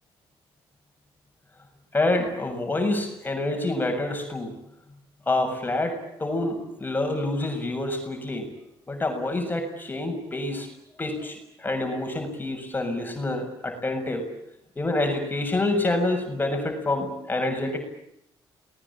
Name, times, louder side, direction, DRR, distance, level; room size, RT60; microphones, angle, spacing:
voice 1, 1.9-4.5 5.3-8.5 8.9-10.7 11.0-14.3 14.8-17.8, left 2 dB, 20° left, 4 dB, 6.9 m, -27 dB
28.5 x 20.0 x 8.7 m, 0.79 s
cardioid pair, 95°, 10 cm